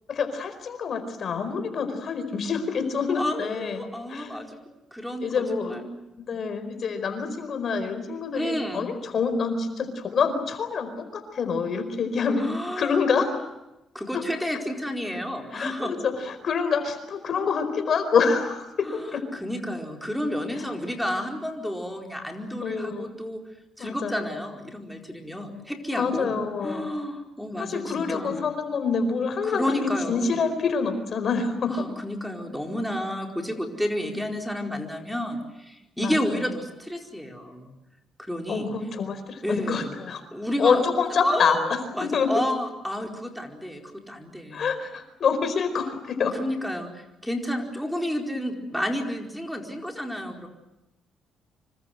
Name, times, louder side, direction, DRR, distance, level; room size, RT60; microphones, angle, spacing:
voice 1, 0.1-3.8 4.1-4.4 5.2-5.8 6.2-13.3 14.1-14.2 15.5-19.2 20.6-20.7 22.6-23.1 23.8-24.3 25.9-26.9 27.6-29.8 30.1-31.9 36.0-36.3 38.5-40.2 40.6-41.6 42.1-42.3 44.5-46.3, left 5 dB, 55° left, 9 dB, 4.6 m, -26 dB
voice 2, 3.2-4.6 4.9-5.8 8.3-8.9 12.4-12.9 13.9-15.9 18.8-23.4 23.8-26.3 26.6-28.4 29.4-30.3 31.7-37.7 38.2-38.7 39.4-39.9 40.3-40.8 41.1-44.7 46.3-50.5, equal, ahead, 1 dB, 4.6 m, -31 dB
26.5 x 24.5 x 7.9 m, 0.95 s
cardioid pair, 90°, 0 cm